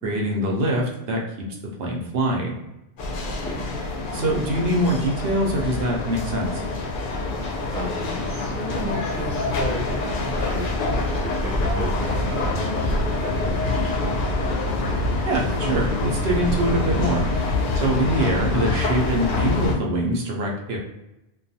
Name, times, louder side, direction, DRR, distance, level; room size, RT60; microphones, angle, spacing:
voice 1, 0.0-1.2 1.6-2.6 4.1-6.6 15.3-17.3 17.8-20.8, right 1 dB, 70° right, -1 dB, 0.8 m, -24 dB
sound 1, 3.0-19.7, left 2 dB, 60° left, 0.7 m, -25 dB
voice 2, 3.2-3.6 7.4-10.0 10.3-14.1, equal, 10° left, -6 dB, 0.4 m, -34 dB
2.3 x 2.2 x 2.6 m, 0.93 s
omnidirectional pair, 1.1 m